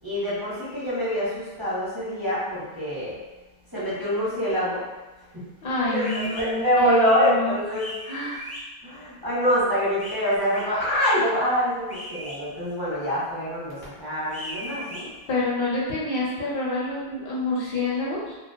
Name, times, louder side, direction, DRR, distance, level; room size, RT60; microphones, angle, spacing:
voice 1, 0.0-3.1 3.7-4.8 5.9-7.9 8.8-15.1, equal, 25° right, -11 dB, 0.7 m, -25 dB
voice 2, 5.6-7.6 8.0-8.4 15.3-18.3, left 2 dB, 65° left, -6 dB, 0.8 m, -27 dB
sound 1, 6.0-6.4 7.7-8.6 10.0-10.6 11.9-12.4 14.3-15.0, equal, 20° left, 0.5 m, -37 dB
2.3 x 2.2 x 2.5 m, 1.1 s
omnidirectional pair, 1.0 m